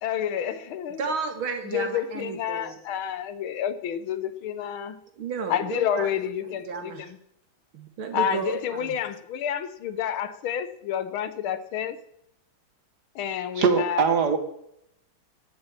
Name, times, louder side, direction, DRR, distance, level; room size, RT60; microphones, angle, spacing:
voice 1, 0.0-1.0 1.6-5.0 5.5-7.2 8.1-12.0 13.1-14.2, left 9 dB, 90° left, 13 dB, 1.8 m, -29 dB
voice 2, 1.0-2.8 5.2-6.1 6.4-7.1 7.7-9.0, right 5 dB, 80° right, 6 dB, 2.7 m, -33 dB
voice 3, 13.5-14.4, right 5 dB, 55° right, 9 dB, 1.9 m, -21 dB
13.0 x 7.3 x 9.1 m, 0.79 s
omnidirectional pair, 2.2 m